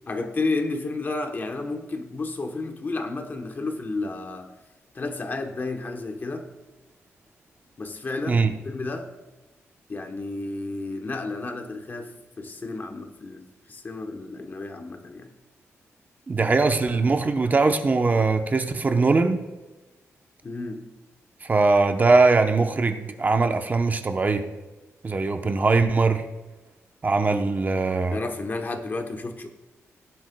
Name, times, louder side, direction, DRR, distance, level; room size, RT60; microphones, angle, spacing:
voice 1, 0.1-4.5 4.9-6.5 7.8-9.1 9.9-15.3 20.4-20.9 28.1-29.5, left 3 dB, 40° left, 1.0 m, -32 dB
voice 2, 16.3-19.4 21.4-24.4 25.0-26.2 27.0-28.2, right 3 dB, 35° right, 0.8 m, -21 dB
17.0 x 10.5 x 2.3 m
wide cardioid pair, 110°, 5 cm